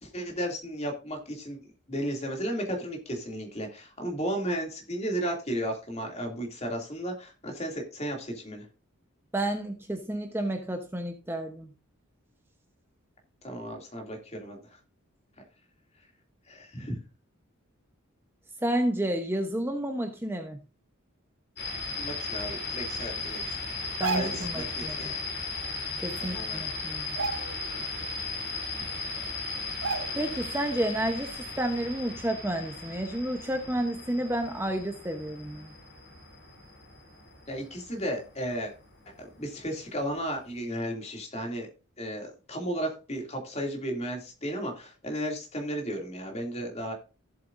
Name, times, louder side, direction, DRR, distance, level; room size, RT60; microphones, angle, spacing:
voice 1, 0.0-1.6 1.9-8.7 13.4-14.6 16.5-17.0 22.0-23.7 24.1-25.2 26.2-26.6 37.5-38.7 39.2-41.7 42.0-46.9, equal, 30° left, 2 dB, 2.6 m, -34 dB
voice 2, 9.3-11.7 18.6-20.6 24.0-25.1 26.0-27.2 30.2-35.7, right 1 dB, 10° right, 4 dB, 0.9 m, -31 dB
sound 1, 21.6-38.2, left 3 dB, 50° left, 3.2 m, -36 dB
sound 2, 23.8-24.6 26.0-26.1 26.4-26.7 27.1-27.9 28.3-28.4 29.2-29.3 29.8-30.4 30.8-31.0, right 4 dB, 70° right, 0.7 m, -33 dB
15.5 x 7.8 x 2.6 m, 0.32 s
head